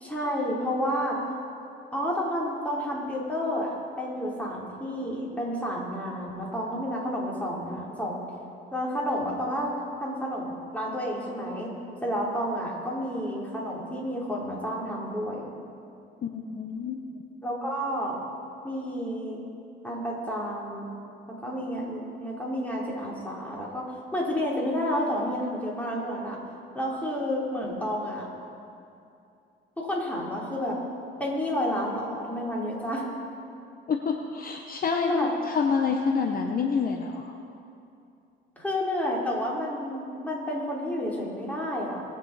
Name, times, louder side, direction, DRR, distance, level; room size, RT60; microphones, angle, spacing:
voice 1, 0.0-1.2 1.9-8.2 8.7-9.7 10.0-11.7 12.0-15.5 17.4-18.2 18.6-19.4 19.8-20.9 21.4-26.4 26.7-28.3 29.8-30.8 31.2-33.1 34.9-35.3 38.6-42.0, equal, 5° left, -4 dB, 3.2 m, -30 dB
voice 2, 16.2-17.0 33.9-37.4, left 5 dB, 45° left, 3 dB, 0.8 m, -28 dB
20.0 x 7.5 x 4.1 m, 2.6 s
cardioid pair, 90°, 20 cm